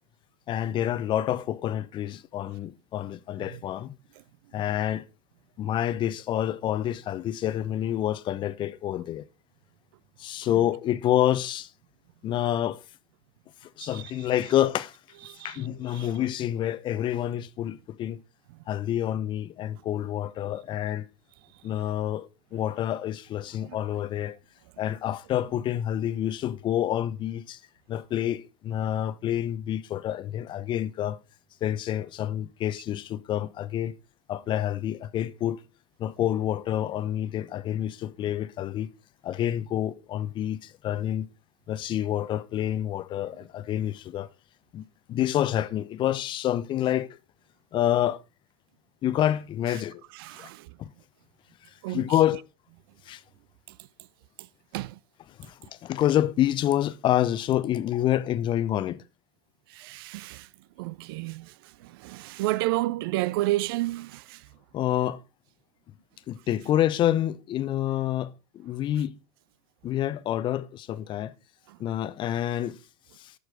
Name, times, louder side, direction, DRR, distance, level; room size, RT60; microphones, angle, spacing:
voice 1, 0.5-3.9 4.5-5.0 5.6-9.3 10.2-11.7 12.2-12.8 13.6-15.0 15.4-18.2 18.7-21.1 21.6-24.4 24.8-27.6 27.9-31.2 31.6-33.9 34.3-35.6 36.0-38.9 39.2-41.3 41.7-44.3 44.7-47.2 47.7-48.2 49.0-50.0 50.4-50.5 50.8-50.9 51.9-52.4 53.1-53.2 55.4-59.0 64.7-65.2 66.3-69.2 69.8-71.3 71.8-72.8 73.2-73.3, left 12 dB, 35° left, 0.7 m, -28 dB
voice 2, 15.3-15.7 15.9-16.1 50.1-50.7 51.8-52.1 53.7-53.8 54.4-54.5 54.7-55.0 59.7-60.5 60.8-64.5 71.7-71.8, right 18 dB, 60° right, 0.4 m, -31 dB
13.5 x 6.3 x 3.7 m
hypercardioid pair, 90°, 14 cm